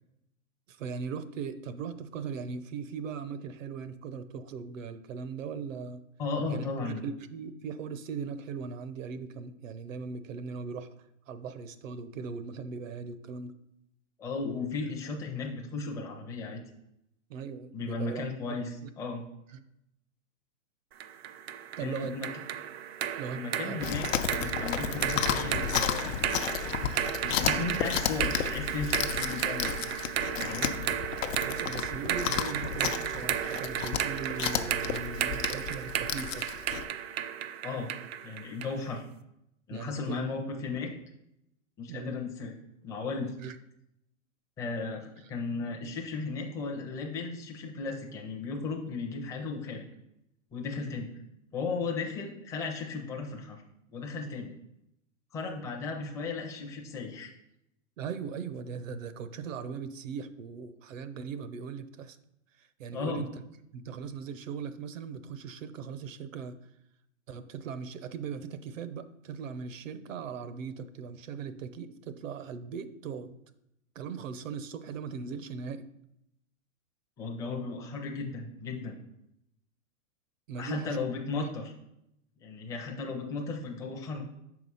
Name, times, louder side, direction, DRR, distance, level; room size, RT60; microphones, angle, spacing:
voice 1, 0.7-6.0 6.5-10.9 11.3-13.5 17.3-18.2 18.5-18.6 19.5-19.6 21.8-22.2 23.2-23.8 31.3-36.5 39.7-40.4 41.9-42.2 43.4-43.6 58.0-62.2 62.6-63.4 63.7-66.6 67.3-73.4 73.9-75.9 80.5-81.0, right 6 dB, 80° right, 12 dB, 0.8 m, -39 dB
voice 2, 6.2-7.1 14.2-16.6 17.7-19.2 21.8-22.3 23.3-26.1 27.2-29.7 30.5-30.7 37.6-37.9 38.2-39.1 39.7-40.9 41.8-42.5 42.8-43.4 44.6-49.8 50.5-51.1 51.5-53.6 53.9-54.5 55.3-57.3 62.9-63.3 77.2-79.0 80.6-81.7 82.4-84.2, left 4 dB, 10° left, 1 dB, 0.5 m, -35 dB
sound 1, 21.0-38.8, right 10 dB, 55° right, 0.5 m, -34 dB
Chewing mastication, 23.8-36.8, left 9 dB, 80° left, 0.7 m, -33 dB
6.1 x 4.8 x 5.4 m, 0.81 s
hypercardioid pair, 150°, 39 cm